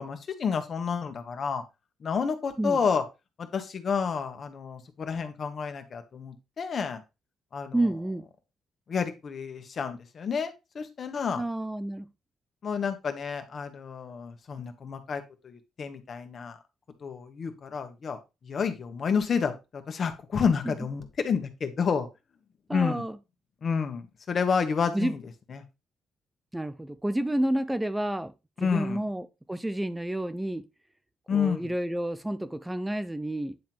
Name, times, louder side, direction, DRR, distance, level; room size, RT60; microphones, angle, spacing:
voice 1, 0.0-1.6 2.0-3.0 3.4-7.0 7.5-7.8 8.9-11.4 12.6-16.6 17.0-18.2 18.4-22.1 22.7-23.0 23.6-25.2 25.5-25.6 28.6-29.0 31.3-31.7, left 6 dB, 50° left, 1.5 m, -30 dB
voice 2, 7.7-8.3 11.4-12.1 20.6-20.7 22.7-23.2 24.9-25.2 26.5-28.3 28.6-30.6 31.3-33.6, right 1 dB, 10° right, 0.5 m, -30 dB
9.4 x 3.8 x 4.5 m
cardioid pair, 90°, 0 cm